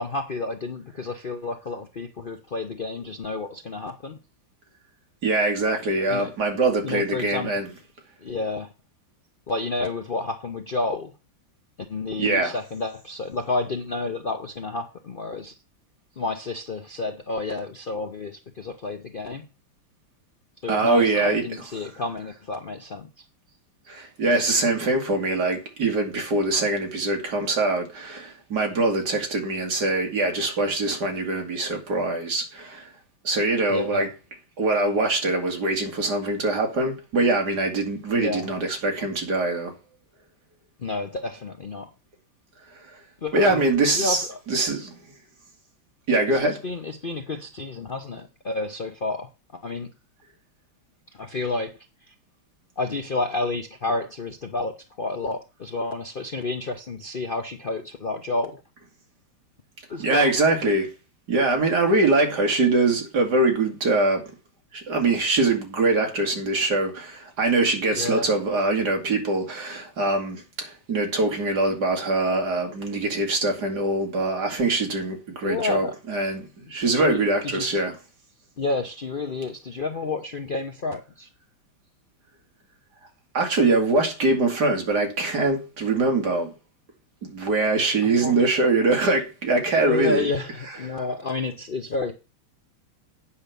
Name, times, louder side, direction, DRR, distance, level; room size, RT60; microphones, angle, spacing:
voice 1, 0.0-4.2 6.1-6.3 6.8-7.6 8.2-8.7 9.5-11.1 11.9-15.6 16.2-19.5 20.6-23.2 33.7-34.1 38.1-38.5 40.8-41.9 43.2-43.7 43.9-44.4 46.3-49.9 51.1-51.7 52.0-52.1 52.8-58.6 59.9-60.3 67.9-68.3 75.4-75.9 76.6-77.8 78.6-81.3 88.0-88.4 89.8-92.1, left 3 dB, 90° left, 0.4 m, -30 dB
voice 2, 5.2-7.7 12.2-12.5 20.7-21.4 23.9-32.9 33.2-34.1 34.6-39.7 43.3-44.2 44.5-44.9 46.1-46.6 60.0-60.9 61.3-64.3 64.7-77.9 83.3-86.5 87.3-90.3 90.8-90.9, right 2 dB, 50° right, 2.6 m, -23 dB
8.6 x 5.9 x 6.8 m
omnidirectional pair, 2.3 m